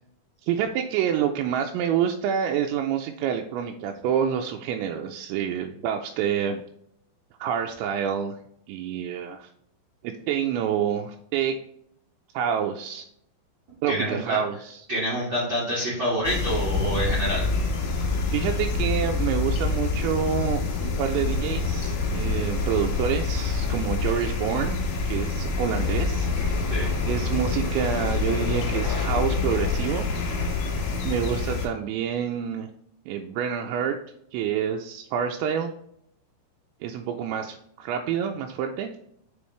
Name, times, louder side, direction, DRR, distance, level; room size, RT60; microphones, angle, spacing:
voice 1, 0.4-6.6 7.4-8.4 8.7-9.5 10.0-11.6 12.3-13.1 13.8-14.8 18.3-24.8 25.0-26.3 27.0-30.1 31.0-32.7 33.1-34.0 34.3-35.7 36.8-38.9, right 8 dB, 85° right, 3 dB, 2.8 m, -27 dB
voice 2, 13.9-14.4 14.9-17.5 26.7-26.9, equal, 55° right, -6 dB, 1.3 m, -27 dB
sound 1, 16.2-31.7, left 4 dB, 65° left, 2.5 m, -26 dB
7.0 x 4.6 x 3.1 m, 0.72 s
omnidirectional pair, 5.2 m